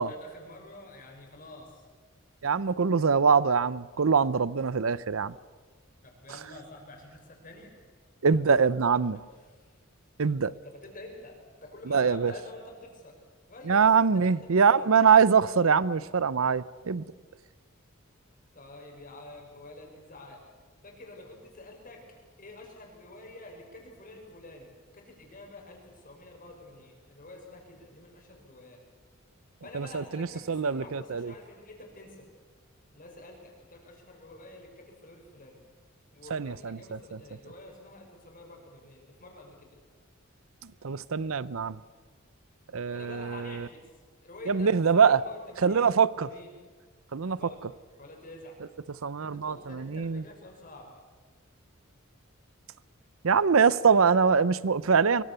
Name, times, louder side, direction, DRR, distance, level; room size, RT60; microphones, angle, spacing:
voice 1, 0.0-1.8 6.0-7.9 9.3-9.7 10.6-13.2 13.5-15.1 18.5-20.4 20.8-22.0 22.4-28.8 29.6-32.3 32.9-35.6 36.1-39.8 42.9-43.8 44.2-45.9 46.1-46.5 47.4-47.6 48.0-48.6 49.3-50.9, left 2 dB, 40° left, 5.6 m, -48 dB
voice 2, 2.4-5.3 8.2-9.2 10.2-10.5 11.9-12.3 13.7-17.1 29.7-31.3 36.3-37.0 40.8-41.8 42.7-43.7 44.5-45.2 45.6-46.3 47.1-47.4 49.0-50.2 53.2-55.2, right 6 dB, 80° right, 0.6 m, -23 dB
24.0 x 24.0 x 6.9 m
head